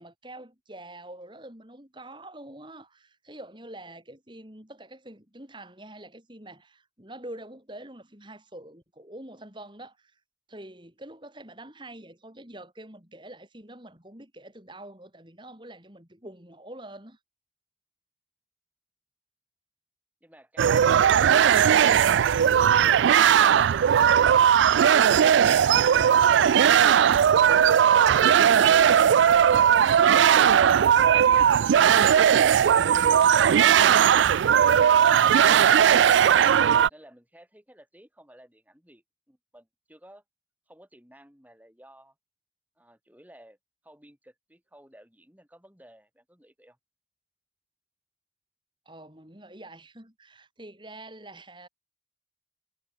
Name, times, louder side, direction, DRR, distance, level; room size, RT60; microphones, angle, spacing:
voice 1, 0.0-10.2 10.5-17.2 48.9-51.7, right 1 dB, 25° right, 3.9 m, -45 dB
sound 1, 20.6-36.9, right 8 dB, 80° right, 0.3 m, -18 dB
voice 2, 36.9-40.2 40.7-42.1 42.8-43.6 43.8-46.8, equal, 10° right, 4.9 m, -55 dB
head